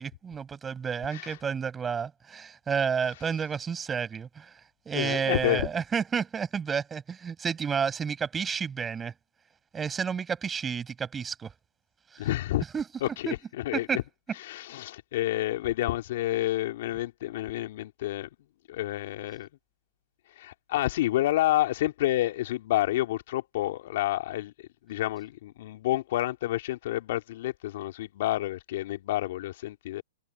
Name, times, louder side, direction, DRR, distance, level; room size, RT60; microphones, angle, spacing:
voice 1, 0.0-4.5 4.9-9.1 9.7-11.5 12.1-12.3 12.7-13.3 13.7-14.0, right 6 dB, 15° right, 7.9 m, -31 dB
voice 2, 4.9-5.7 12.2-12.6 13.0-13.4 13.6-14.0 14.4-18.3 18.7-19.5 20.4-24.5 24.9-30.0, left 15 dB, 55° left, 2.7 m, -29 dB
hypercardioid pair, 130°, 0 cm